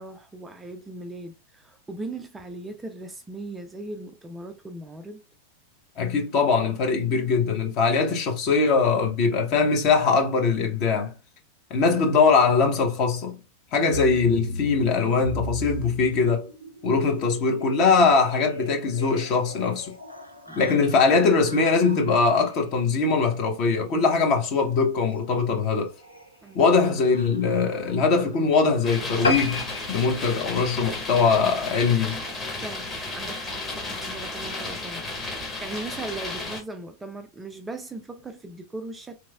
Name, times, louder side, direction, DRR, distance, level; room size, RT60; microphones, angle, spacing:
voice 1, 0.0-5.2 20.5-20.6 26.4-26.6 32.5-39.2, right 2 dB, 10° right, 0.4 m, -38 dB
voice 2, 6.0-11.1 11.7-13.4 13.7-16.5 16.8-19.9 20.6-25.9 26.5-32.2, left 4 dB, 40° left, 1.0 m, -21 dB
sound 1, 13.9-29.3 30.0-30.3 30.5-30.8 31.0-31.2 31.5-31.7, right 1 dB, 90° right, 0.6 m, -41 dB
sound 2, 28.8-36.6, left 2 dB, 15° left, 1.1 m, -33 dB
sound 3, 29.2-32.0 32.5-32.7 33.1-33.2 33.5-33.6 33.8-33.9, left 3 dB, 75° left, 0.5 m, -29 dB
3.0 x 2.7 x 2.3 m
figure-of-eight pair, 90°, 0 cm